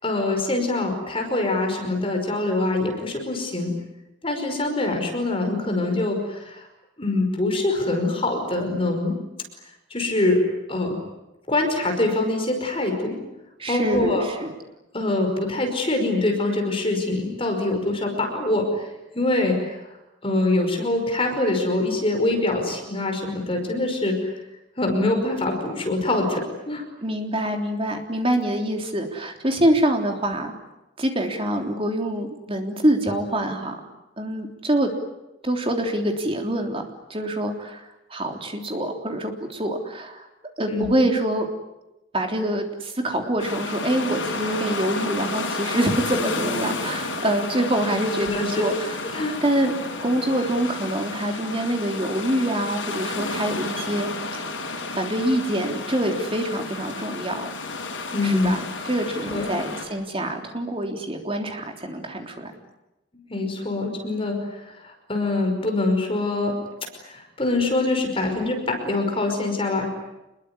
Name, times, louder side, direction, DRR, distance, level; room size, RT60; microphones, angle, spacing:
voice 1, 0.0-3.8 4.2-6.7 7.0-9.1 9.9-11.0 11.5-13.2 13.7-14.2 14.9-19.8 20.2-24.3 24.8-26.8 40.7-41.0 48.2-48.8 49.1-49.4 58.1-58.5 59.2-59.5 63.3-66.6 67.0-69.9, left 2 dB, 30° left, 3 dB, 5.3 m, -24 dB
voice 2, 13.6-14.5 27.0-30.5 31.0-33.8 34.2-35.0 35.4-40.3 40.6-41.5 42.1-49.7 50.0-54.1 54.9-57.5 58.2-62.5, right 1 dB, 30° right, 3 dB, 3.4 m, -25 dB
sound 1, 43.4-59.9, left 3 dB, 85° left, 5.9 m, -31 dB
27.5 x 22.0 x 9.8 m, 0.97 s
head